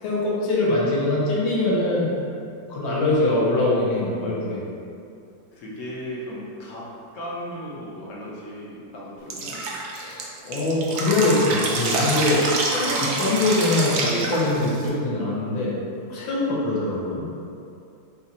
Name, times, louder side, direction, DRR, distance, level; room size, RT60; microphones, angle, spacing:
voice 1, 0.0-2.1 2.6-4.6 9.9-12.4 12.7-15.8 16.1-17.3, left 2 dB, 85° left, -5 dB, 1.6 m, -23 dB
voice 2, 5.5-6.9 7.1-9.6, equal, 55° left, -5 dB, 0.9 m, -36 dB
Drip, 9.3-14.9, right 2 dB, 90° right, 0.7 m, -26 dB
4.2 x 2.4 x 4.1 m, 2.5 s
omnidirectional pair, 2.1 m